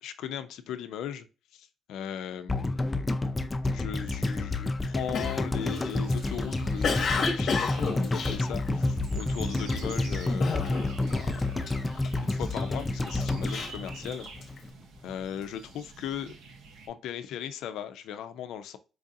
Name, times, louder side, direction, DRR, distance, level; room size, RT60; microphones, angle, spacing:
voice 1, 0.0-1.3 1.5-11.7 12.2-14.3 15.0-16.3 16.9-18.8, left 9 dB, 85° left, 0.3 m, -38 dB
sound 1, 2.5-14.7 15.0-15.1, left 2 dB, 20° left, 0.4 m, -29 dB
Cough, 5.1-9.2 9.7-10.0 10.4-11.1 11.4-12.5 13.1-14.6, left 5 dB, 55° left, 0.8 m, -31 dB
sound 2, 5.6-16.9, right 4 dB, 85° right, 0.7 m, -49 dB
4.6 x 2.5 x 2.6 m
cardioid pair, 90°, 0 cm